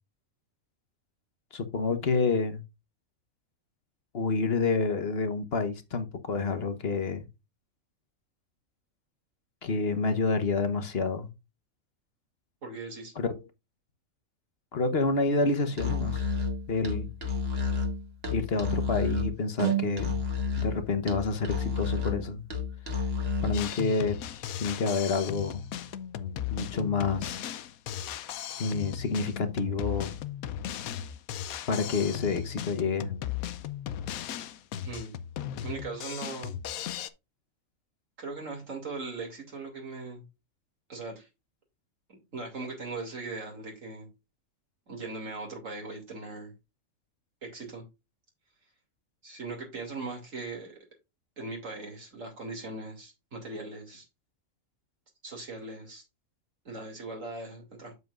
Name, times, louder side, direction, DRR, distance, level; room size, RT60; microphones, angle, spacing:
voice 1, 1.5-2.6 4.1-7.3 9.6-11.3 13.2-13.4 14.7-16.2 16.7-17.1 18.3-20.2 20.6-22.4 23.4-24.2 24.6-25.6 26.5-27.4 28.6-30.2 31.7-33.1, left 4 dB, 50° left, 1.3 m, -28 dB
voice 2, 12.6-13.1 34.8-35.1 35.6-36.5 38.2-40.2 40.9-41.3 42.1-44.1 44.9-46.5 47.4-47.8 49.2-50.8 51.4-54.0 55.2-56.0 56.6-57.9, right 3 dB, 65° right, 2.9 m, -39 dB
Musical instrument, 15.7-23.7, left 3 dB, 45° right, 2.1 m, -30 dB
Drum kit, 23.5-37.1, left 10 dB, 85° left, 1.1 m, -36 dB
8.0 x 7.4 x 2.5 m
omnidirectional pair, 1.5 m